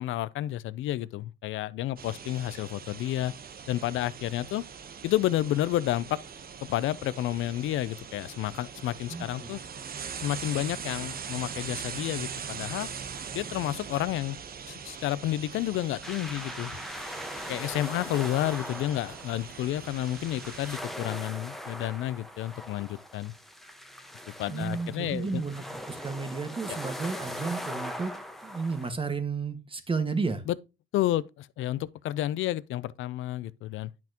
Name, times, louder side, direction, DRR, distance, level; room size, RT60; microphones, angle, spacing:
voice 1, 0.0-3.3 3.7-4.6 5.0-6.2 6.7-9.6 10.2-12.9 13.3-14.4 14.7-16.8 17.5-23.3 24.4-25.4 26.7-26.8 30.5-30.6 30.9-33.9, left 14 dB, 85° left, 0.5 m, -30 dB
sound 1, 2.0-20.8, right 6 dB, 50° right, 1.1 m, -41 dB
voice 2, 9.1-9.5 24.5-30.4, right 4 dB, 25° right, 1.7 m, -32 dB
sound 2, 16.0-28.9, equal, ahead, 1.2 m, -40 dB
10.5 x 5.9 x 3.0 m
cardioid pair, 90°, 20 cm